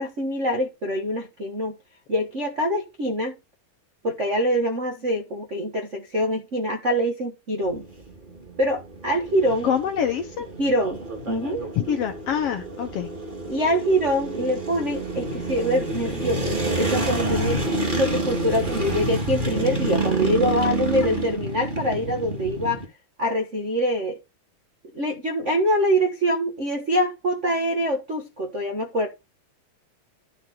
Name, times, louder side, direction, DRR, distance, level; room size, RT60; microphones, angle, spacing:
voice 1, 0.0-1.8 2.1-3.4 4.0-7.8 8.6-9.7 10.6-11.6 13.5-22.8 23.2-24.2 24.9-29.1, equal, 65° right, 0.7 m, -24 dB
sound 1, 7.6-22.9, right 2 dB, 20° right, 1.8 m, -28 dB
voice 2, 9.6-10.5 11.8-13.1, left 8 dB, 65° left, 1.6 m, -25 dB
12.0 x 4.1 x 4.8 m
omnidirectional pair, 3.8 m